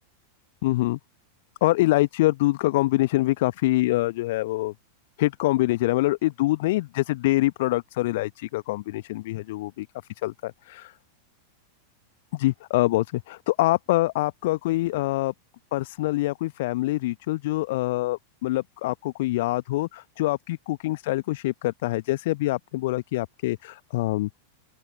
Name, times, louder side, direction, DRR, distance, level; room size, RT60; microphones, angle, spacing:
voice 1, 0.6-1.0 1.6-4.7 5.2-9.9 10.2-10.9 12.3-15.3 15.7-24.3, left 18 dB, 50° left, 1.2 m, -25 dB
open air
figure-of-eight pair, 90°, 0 cm